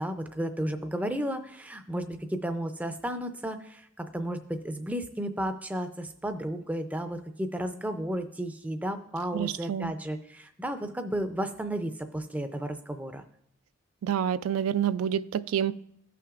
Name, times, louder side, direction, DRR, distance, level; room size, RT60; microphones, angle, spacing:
voice 1, 0.0-13.2, right 1 dB, 5° right, 8 dB, 0.4 m, -33 dB
voice 2, 9.3-9.9 14.0-15.7, right 9 dB, 90° right, 16 dB, 0.3 m, -28 dB
15.0 x 5.8 x 2.4 m, 0.71 s
head